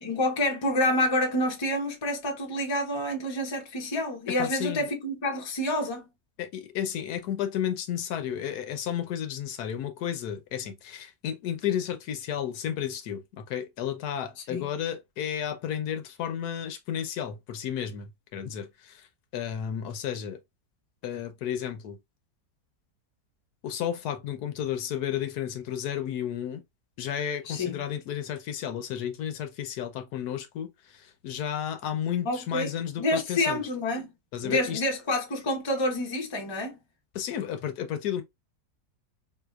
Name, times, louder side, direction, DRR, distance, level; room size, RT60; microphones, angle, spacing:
voice 1, 0.0-6.0 14.5-14.6 27.5-27.8 32.2-32.7 33.0-34.1 34.4-36.8, left 1 dB, 25° left, 0.6 m, -28 dB
voice 2, 4.3-4.9 6.4-19.1 19.3-20.4 21.0-22.0 23.6-26.6 27.0-33.6 34.3-34.8 37.1-38.2, left 9 dB, 80° left, 1.2 m, -32 dB
3.8 x 2.8 x 2.3 m
omnidirectional pair, 1.7 m